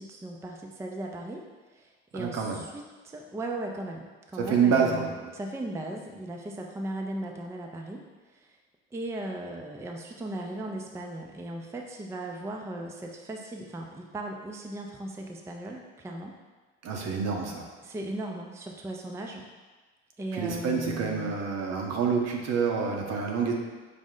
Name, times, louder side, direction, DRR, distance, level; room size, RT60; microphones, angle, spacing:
voice 1, 0.0-1.4 1.7-8.5 8.9-16.3 17.8-19.5 20.2-21.3, right 1 dB, 10° right, 1 dB, 0.4 m, -37 dB
voice 2, 2.1-2.6 4.4-5.1 16.8-17.7 20.3-23.5, right 6 dB, 60° right, 0 dB, 0.8 m, -27 dB
5.1 x 2.0 x 3.7 m, 1.3 s
supercardioid pair, 75°, 29 cm